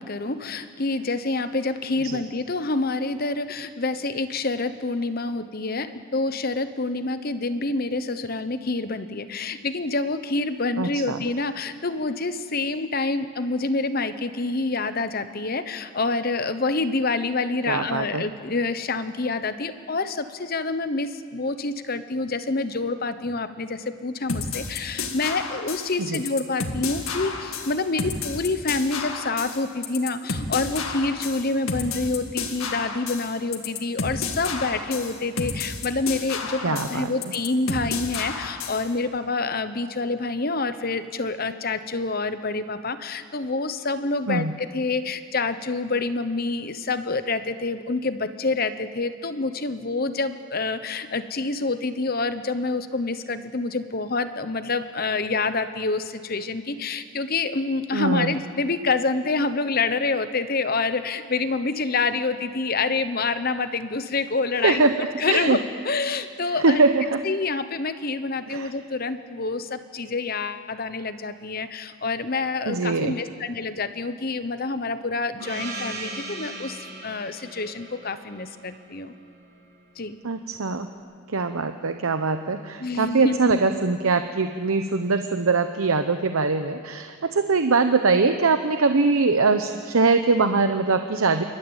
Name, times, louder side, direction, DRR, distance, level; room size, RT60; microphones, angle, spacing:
voice 1, 0.0-66.8 67.2-79.1 80.0-80.2 82.8-83.6, left 3 dB, 45° left, 11 dB, 1.0 m, -27 dB
voice 2, 10.8-11.2 17.7-18.2 26.0-26.2 36.6-37.1 44.3-44.5 57.9-58.4 64.6-65.6 66.6-67.2 68.5-68.7 72.7-73.1 80.2-80.9 81.3-91.4, right 4 dB, 80° right, 8 dB, 0.8 m, -22 dB
sound 1, 24.3-38.9, left 4 dB, 75° left, 2.0 m, -31 dB
Gong, 75.4-79.7, right 2 dB, 55° right, 7.7 m, -38 dB
29.5 x 13.0 x 8.9 m, 2.2 s
head